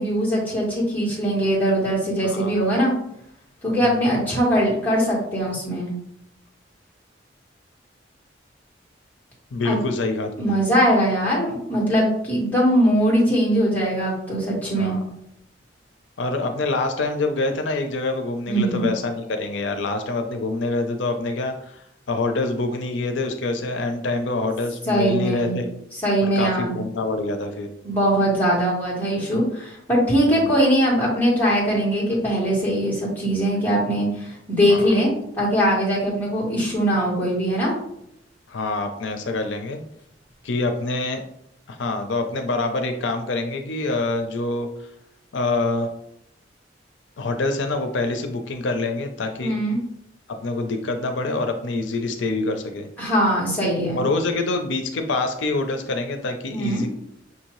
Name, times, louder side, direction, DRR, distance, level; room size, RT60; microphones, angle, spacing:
voice 1, 0.0-2.9 3.6-5.9 9.6-9.8 10.4-15.0 18.5-18.8 24.9-25.6 26.0-26.8 27.8-35.1 35.4-37.7 49.4-49.8 53.0-54.0 56.5-56.8, equal, 10° left, -6 dB, 1.6 m, -21 dB
voice 2, 2.2-2.7 3.8-4.2 9.5-10.6 14.8-15.0 16.2-25.7 26.2-27.7 30.2-30.5 34.7-35.0 38.5-39.8 40.4-41.2 41.7-44.9 45.3-45.9 47.2-49.6 50.4-52.9 54.0-56.9, left 2 dB, 85° left, 6 dB, 0.5 m, -26 dB
5.9 x 2.7 x 3.0 m, 0.75 s
head